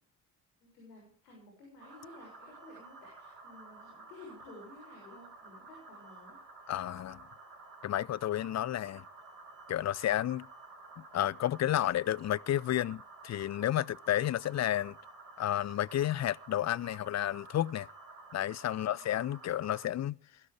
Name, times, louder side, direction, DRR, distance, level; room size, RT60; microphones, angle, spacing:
voice 1, 0.6-6.4 18.7-19.0, left 2 dB, 75° left, 6.8 m, -53 dB
sound 1, 1.8-19.9, right 3 dB, 85° right, 4.8 m, -52 dB
voice 2, 6.7-7.3 7.8-9.0 9.7-10.5 11.1-15.0 15.4-17.9 18.3-20.2, left 12 dB, 35° left, 0.7 m, -31 dB
21.0 x 16.5 x 3.5 m
figure-of-eight pair, 40°, 48 cm